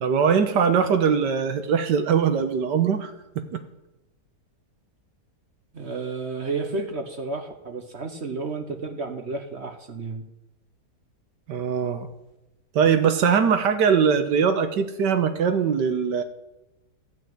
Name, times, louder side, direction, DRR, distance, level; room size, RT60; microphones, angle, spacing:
voice 1, 0.0-3.6 11.5-12.1 12.7-16.2, right 7 dB, 85° right, 8 dB, 1.6 m, -21 dB
voice 2, 5.7-10.2, right 3 dB, 45° right, 6 dB, 1.3 m, -31 dB
14.0 x 5.8 x 9.2 m, 0.98 s
omnidirectional pair, 1.8 m